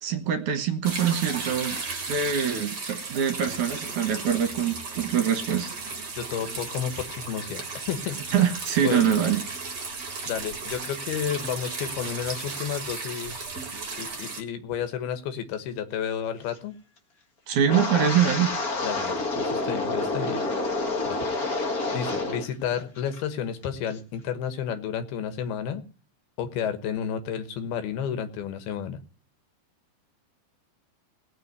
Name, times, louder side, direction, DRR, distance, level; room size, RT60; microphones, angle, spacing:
voice 1, 0.0-1.8 2.1-5.7 8.3-9.4 17.5-18.6, right 8 dB, 60° right, 8 dB, 2.5 m, -24 dB
sound 1, 0.8-14.4, right 4 dB, 35° right, 2.1 m, -35 dB
voice 2, 6.2-8.3 8.8-9.2 10.3-13.4 14.0-16.7 18.8-20.4 21.1-21.2 21.5-21.7 21.9-25.8 26.4-29.0, left 8 dB, 80° left, 9 dB, 3.2 m, -31 dB
Wind, 17.6-22.5 22.8-23.2 23.6-23.9, left 2 dB, 40° left, 1.3 m, -28 dB
18.0 x 6.1 x 9.5 m, 0.39 s
omnidirectional pair, 4.4 m